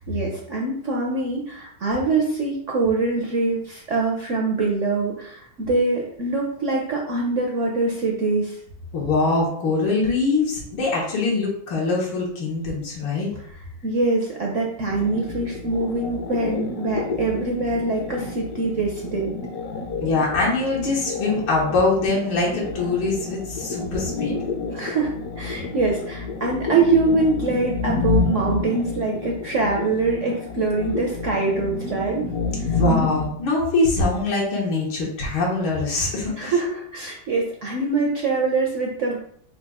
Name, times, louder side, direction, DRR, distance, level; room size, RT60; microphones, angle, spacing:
voice 1, 0.1-8.6 13.8-19.4 24.7-25.1 25.4-32.3 32.6-32.7 36.4-39.2, right 3 dB, 75° right, -1 dB, 0.7 m, -24 dB
voice 2, 8.9-13.3 20.0-24.3 32.6-36.6, left 3 dB, 85° left, -3 dB, 2.0 m, -23 dB
sound 1, 14.9-33.3, left 4 dB, 65° left, 1.0 m, -29 dB
4.8 x 2.3 x 4.7 m, 0.65 s
omnidirectional pair, 2.2 m